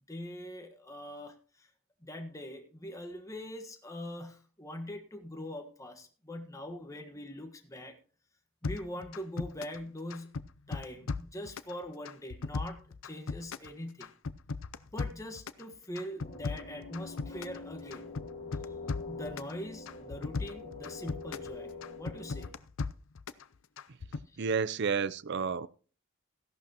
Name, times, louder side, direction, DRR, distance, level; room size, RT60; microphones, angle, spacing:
voice 1, 0.1-1.7 2.0-8.0 8.6-10.3 10.7-14.1 14.9-18.1 19.1-21.7 22.0-22.5 24.3-24.5, left 1 dB, 15° left, 1.4 m, -42 dB
sound 1, 8.6-9.8 10.1-11.7 12.0-13.7 14.0-15.6 15.9-17.6 17.9-19.5 19.9-21.5 21.8-23.4 23.8-24.2, left 4 dB, 65° left, 0.5 m, -37 dB
sound 2, 16.2-22.5, left 4 dB, 35° left, 1.7 m, -45 dB
voice 2, 24.4-25.7, right 5 dB, 55° right, 0.5 m, -30 dB
15.0 x 11.5 x 2.9 m
head